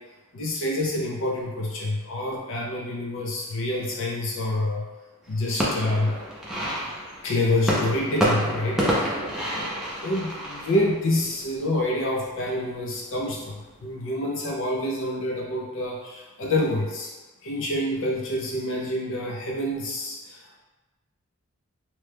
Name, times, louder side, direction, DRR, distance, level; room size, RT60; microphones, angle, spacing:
voice 1, 0.3-4.9 5.3-6.2 7.2-9.2 9.5-17.1 17.4-20.6, left 1 dB, 60° left, -2 dB, 0.5 m, -27 dB
sound 1, 5.2-11.8 12.2-12.8 13.2-13.8, equal, ahead, 0.4 m, -29 dB
2.9 x 2.2 x 3.3 m, 1.2 s
head